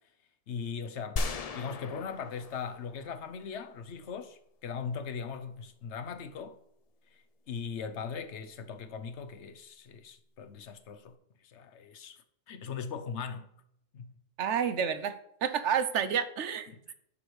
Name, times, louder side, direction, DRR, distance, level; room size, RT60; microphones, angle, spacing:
voice 1, 0.5-1.2 1.5-6.6 7.1-11.2 11.4-12.2 12.5-13.5 13.9-14.1 16.7-16.9, left 6 dB, 65° left, 1.1 m, -39 dB
sound 1, 1.2-3.5, left 3 dB, 45° left, 0.5 m, -37 dB
voice 2, 14.4-16.7, right 8 dB, 70° right, 1.0 m, -30 dB
10.5 x 4.8 x 4.8 m
omnidirectional pair, 1.3 m